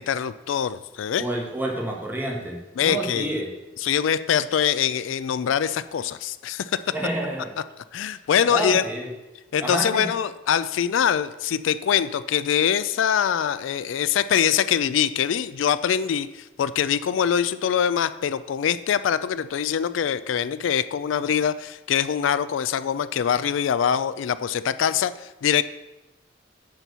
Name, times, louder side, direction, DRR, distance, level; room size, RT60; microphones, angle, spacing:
voice 1, 0.0-1.2 2.8-3.3 3.8-6.9 7.9-8.8 9.5-25.6, left 8 dB, 80° left, 14 dB, 0.3 m, -23 dB
voice 2, 1.2-3.5 6.9-7.5 8.4-9.1 9.6-10.1, right 1 dB, 10° right, -1 dB, 1.5 m, -28 dB
8.1 x 4.5 x 6.8 m, 1.0 s
head